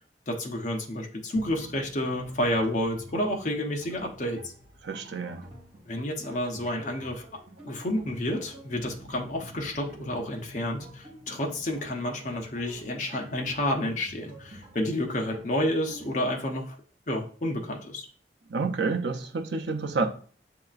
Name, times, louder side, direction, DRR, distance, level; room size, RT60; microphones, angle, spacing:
voice 1, 0.3-4.4 5.9-7.3 7.6-16.8 17.1-18.1, left 1 dB, 45° left, 0.8 m, -30 dB
sound 1, 1.4-16.1, equal, 50° right, 2.0 m, -47 dB
voice 2, 4.8-5.5 18.5-20.1, right 4 dB, 75° right, 0.7 m, -29 dB
7.5 x 2.8 x 2.4 m
head